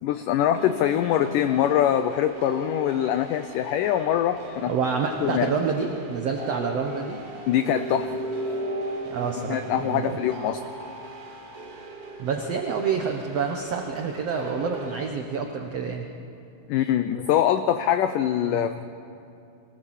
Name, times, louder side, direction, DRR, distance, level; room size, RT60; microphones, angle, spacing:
voice 1, 0.0-4.7 5.2-5.5 7.5-8.1 9.5-10.6 16.7-18.8, left 10 dB, 90° left, 10 dB, 1.8 m, -23 dB
sound 1, 0.5-15.1, right 1 dB, 35° right, 1.5 m, -37 dB
voice 2, 4.7-7.2 9.1-10.2 12.2-16.1 18.4-18.7, right 5 dB, 80° right, 3 dB, 1.4 m, -28 dB
24.5 x 18.0 x 7.3 m, 2.6 s
omnidirectional pair, 4.5 m